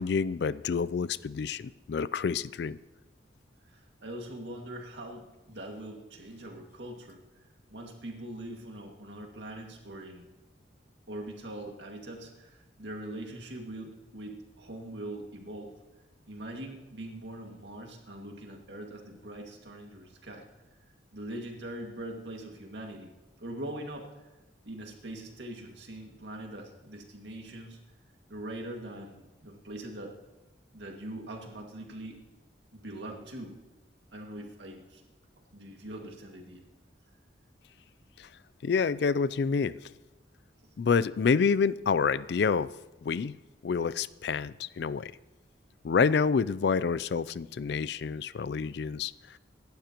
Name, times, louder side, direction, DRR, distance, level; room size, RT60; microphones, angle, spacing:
voice 1, 0.0-2.8 38.2-38.3 38.6-39.8 40.8-42.7 43.0-43.4 43.6-45.1 45.8-49.1, left 5 dB, 60° left, 18 dB, 0.3 m, -28 dB
voice 2, 3.6-7.2 7.7-10.2 11.1-15.7 16.3-20.4 21.1-23.1 23.4-24.3 24.6-27.8 28.3-30.2 30.7-32.2 32.7-33.6 34.1-35.0 35.5-36.6 40.6-40.7, right 1 dB, 70° right, 1 dB, 2.1 m, -42 dB
25.5 x 12.0 x 3.0 m, 1.1 s
head